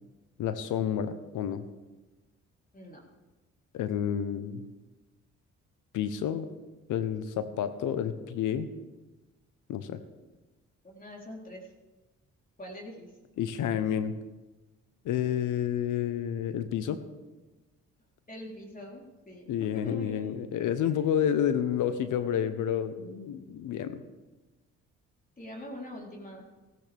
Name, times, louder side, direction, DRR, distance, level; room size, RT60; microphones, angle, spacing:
voice 1, 0.4-1.6 3.7-4.6 5.9-6.5 6.9-8.7 9.7-10.0 13.4-14.1 15.0-17.0 19.5-24.0, left 9 dB, 80° left, 11 dB, 1.0 m, -30 dB
voice 2, 10.8-11.7 12.6-13.1 18.3-20.2 20.8-21.1 25.4-26.5, left 1 dB, 30° left, -1 dB, 3.7 m, -43 dB
16.5 x 13.5 x 3.5 m, 1.1 s
supercardioid pair, 65°, 30 cm